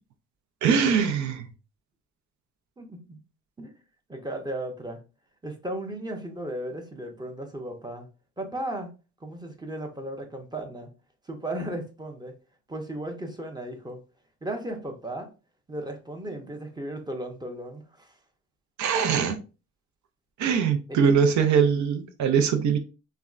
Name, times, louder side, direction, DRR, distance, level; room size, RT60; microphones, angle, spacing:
voice 1, 0.6-1.5 18.8-19.4 20.4-22.8, right 6 dB, 70° right, 8 dB, 0.6 m, -22 dB
voice 2, 2.8-3.2 3.6-3.7 4.1-5.0 5.4-8.1 8.4-8.9 9.2-10.9 11.3-12.3 12.7-14.0 14.4-15.3 15.7-18.1 20.9-21.0, right 1 dB, 15° right, 3 dB, 0.6 m, -35 dB
3.4 x 2.1 x 2.4 m, 0.32 s
cardioid pair, 90°, 30 cm